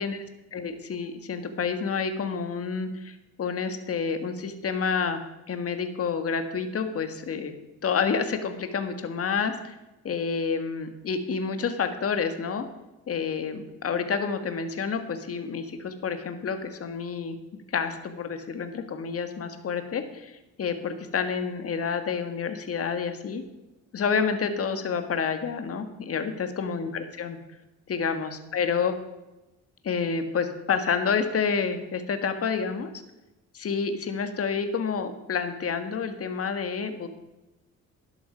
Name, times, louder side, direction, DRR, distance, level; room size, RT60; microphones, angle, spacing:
voice 1, 0.5-5.2 5.5-7.5 7.8-9.7 10.0-12.7 13.1-23.4 23.9-27.4 27.9-28.9 29.8-32.9 33.5-37.1, left 6 dB, 50° left, 8 dB, 1.7 m, -29 dB
12.5 x 11.0 x 5.2 m, 1.0 s
cardioid pair, 90°, 30 cm